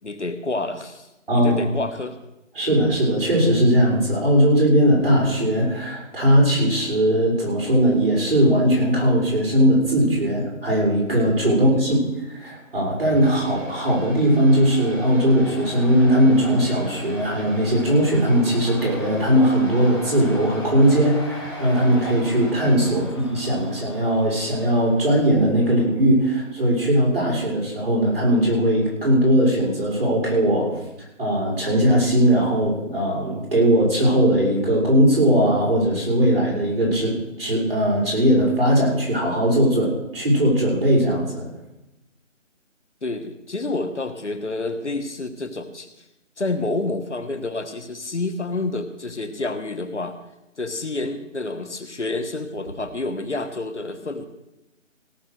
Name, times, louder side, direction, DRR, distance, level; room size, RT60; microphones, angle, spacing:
voice 1, 0.0-2.2 11.5-12.0 22.8-23.1 43.0-45.9 46.4-50.2 50.6-54.3, left 2 dB, 65° left, 9 dB, 1.5 m, -29 dB
voice 2, 1.3-1.7 2.5-12.0 12.3-30.8 31.2-41.5, equal, 45° right, -3 dB, 6.2 m, -19 dB
sound 1, 12.4-26.1, left 2 dB, 20° left, 1.5 m, -40 dB
sound 2, 13.1-22.9, right 2 dB, 70° right, 4.6 m, -40 dB
17.5 x 7.3 x 6.6 m, 0.93 s
figure-of-eight pair, 175°, 38 cm